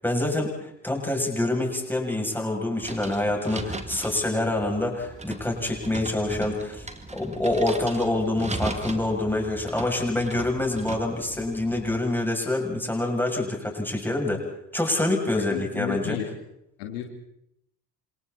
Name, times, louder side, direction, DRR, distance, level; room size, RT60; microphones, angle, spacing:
voice 1, 0.0-6.9 7.1-14.4 14.7-16.2, left 2 dB, 5° left, 1 dB, 7.6 m, -26 dB
sound 1, 2.8-12.0, right 2 dB, 15° right, 2.5 m, -37 dB
voice 2, 15.3-16.3 16.8-17.0, left 10 dB, 65° left, 4 dB, 2.7 m, -33 dB
29.5 x 27.0 x 4.3 m, 0.77 s
figure-of-eight pair, 55°, 50 cm